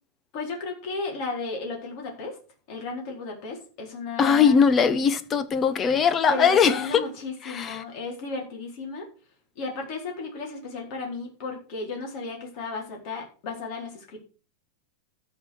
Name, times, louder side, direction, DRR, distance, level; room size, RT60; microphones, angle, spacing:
voice 1, 0.3-2.4 2.7-4.6 6.3-9.1 9.6-14.2, left 4 dB, 40° left, 4.1 m, -34 dB
voice 2, 4.2-7.0 7.4-7.8, left 6 dB, 20° left, 1.0 m, -20 dB
13.0 x 5.2 x 6.5 m
supercardioid pair, 160°, 0 cm